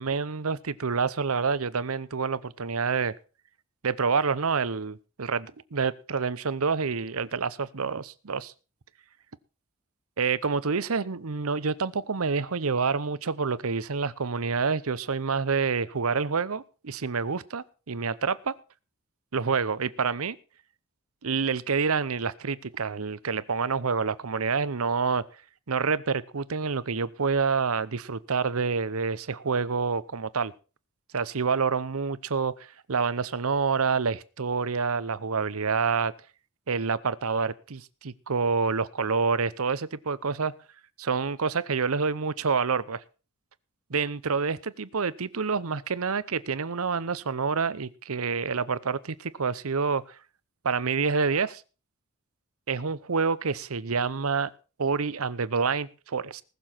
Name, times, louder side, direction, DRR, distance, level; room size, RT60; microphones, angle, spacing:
voice 1, 0.0-3.1 3.8-8.5 10.2-18.5 19.3-20.4 21.2-25.2 25.7-30.5 31.1-36.1 36.7-40.5 41.0-43.0 43.9-50.0 50.6-51.6 52.7-54.5 54.8-56.4, right 5 dB, 70° right, 0.8 m, -27 dB
19.5 x 7.0 x 5.9 m
head